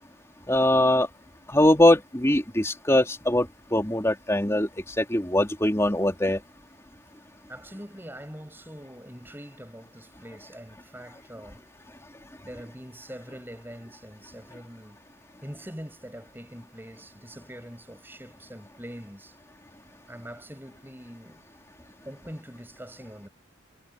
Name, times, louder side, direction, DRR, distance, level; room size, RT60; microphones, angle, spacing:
voice 1, 0.5-1.1 1.5-4.7 5.0-6.4, left 1 dB, 15° left, 3.2 m, -22 dB
voice 2, 7.5-11.6 12.4-15.0 15.4-19.4 20.1-21.5 22.0-23.3, equal, 10° right, 7.9 m, -43 dB
head